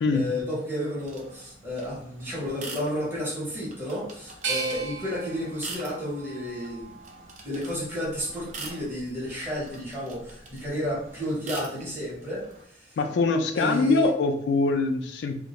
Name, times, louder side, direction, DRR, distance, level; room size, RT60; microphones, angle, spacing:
voice 1, 0.1-7.0 7.4-13.0 13.5-14.1, equal, 10° right, -8 dB, 0.8 m, -32 dB
sound 1, 1.0-12.6, right 3 dB, 40° right, 0.4 m, -45 dB
sound 2, 4.4-7.4 7.9-8.7, right 4 dB, 85° right, 0.6 m, -37 dB
voice 2, 13.0-15.3, left 3 dB, 75° left, 7 dB, 0.3 m, -23 dB
2.3 x 2.1 x 2.8 m, 0.65 s
head